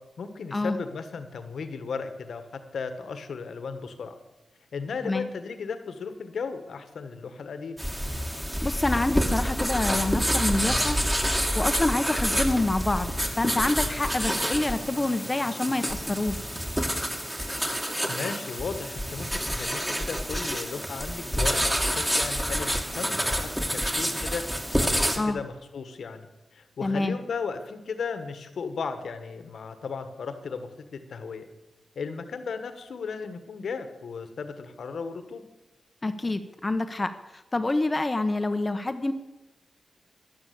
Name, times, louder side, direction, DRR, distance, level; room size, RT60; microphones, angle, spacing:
voice 1, 0.2-4.1 4.7-7.8 18.1-24.4 24.8-26.3 26.5-31.5 31.9-35.4, left 5 dB, 80° left, 9 dB, 1.6 m, -35 dB
sound 1, 7.8-25.2, equal, 10° right, 2.7 m, -28 dB
voice 2, 8.6-11.0 11.5-16.4 25.2-25.4 26.8-27.2 36.0-37.1 37.5-39.1, left 2 dB, 30° left, 9 dB, 1.1 m, -27 dB
12.5 x 12.0 x 8.5 m, 1.0 s
cardioid pair, 60°, 0 cm